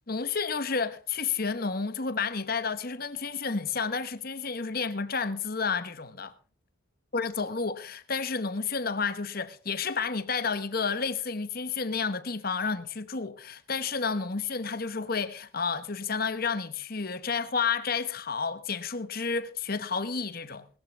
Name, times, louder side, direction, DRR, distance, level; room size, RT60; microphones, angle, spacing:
voice 1, 0.1-6.3 7.1-20.7, left 5 dB, 45° left, 1.1 m, -31 dB
20.0 x 13.5 x 3.5 m
head